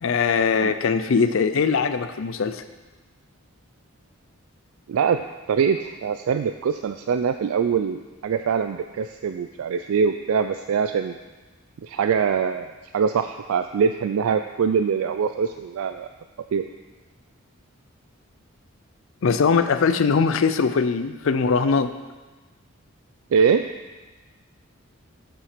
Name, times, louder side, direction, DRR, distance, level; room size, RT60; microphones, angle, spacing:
voice 1, 0.0-2.6 19.2-21.9, left 5 dB, 60° left, 10 dB, 0.4 m, -21 dB
voice 2, 4.9-11.1 11.8-16.1 16.5-16.6 23.3-23.7, right 6 dB, 75° right, 8 dB, 0.3 m, -23 dB
7.7 x 7.2 x 5.0 m, 1.2 s
head